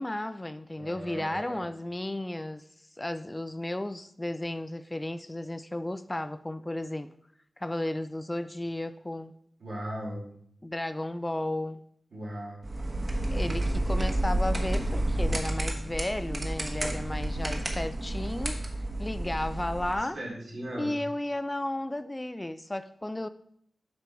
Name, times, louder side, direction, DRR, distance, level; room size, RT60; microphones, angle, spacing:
voice 1, 0.0-2.6 3.0-7.1 7.6-9.3 10.6-11.8 13.3-18.6 19.0-20.2 20.7-23.3, left 1 dB, 15° left, 0.3 m, -33 dB
voice 2, 0.8-1.6 9.6-10.2 12.1-12.7 20.0-20.9, right 1 dB, 80° right, 3.3 m, -38 dB
sound 1, 12.6-20.0, right 1 dB, 35° right, 1.3 m, -30 dB
8.1 x 5.3 x 4.5 m
wide cardioid pair, 85°, 0 cm